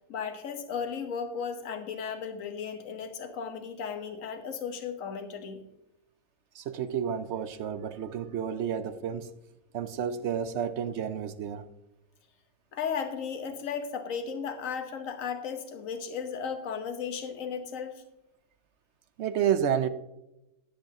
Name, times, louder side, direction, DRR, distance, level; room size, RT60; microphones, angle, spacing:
voice 1, 0.1-5.6 12.7-18.0, left 6 dB, 60° left, 1.4 m, -35 dB
voice 2, 6.6-9.3 9.7-11.6 19.2-19.9, right 8 dB, 65° right, 0.7 m, -30 dB
10.5 x 10.0 x 2.8 m
omnidirectional pair, 1.6 m